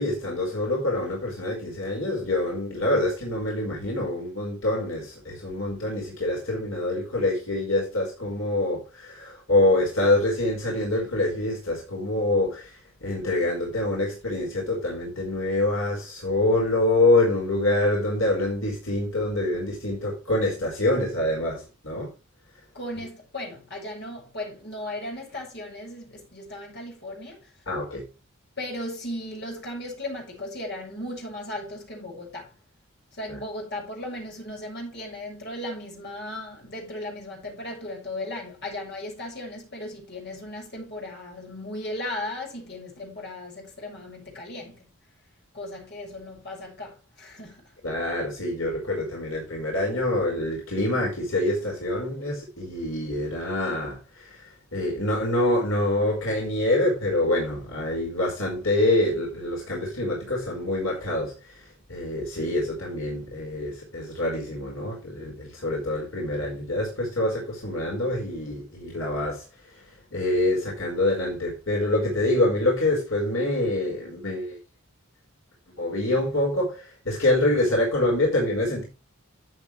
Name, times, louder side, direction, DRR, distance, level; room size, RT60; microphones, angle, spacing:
voice 1, 0.0-22.1 27.7-28.0 47.8-69.8 70.1-74.6 75.8-78.8, left 1 dB, 65° left, 5.0 m, -26 dB
voice 2, 22.7-27.5 28.6-32.5 33.1-44.9 45.5-47.7, left 1 dB, 50° left, 6.8 m, -36 dB
14.5 x 8.3 x 3.3 m
head